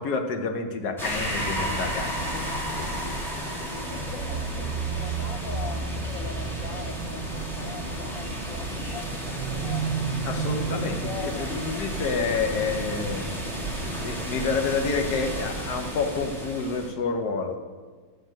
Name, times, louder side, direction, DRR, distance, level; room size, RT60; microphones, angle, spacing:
voice 1, 0.0-3.1 10.2-13.4 14.0-17.6, left 4 dB, 55° left, 5 dB, 1.3 m, -29 dB
Breathing, 1.0-5.9, equal, 35° left, 1.9 m, -34 dB
sound 1, 1.0-16.9, right 1 dB, ahead, 1.4 m, -33 dB
voice 2, 2.8-9.9 10.4-11.6, left 5 dB, 70° left, 3 dB, 0.7 m, -41 dB
sound 2, 4.8-14.4, right 8 dB, 80° right, 1.4 m, -36 dB
11.0 x 5.3 x 7.4 m, 1.5 s
omnidirectional pair, 2.3 m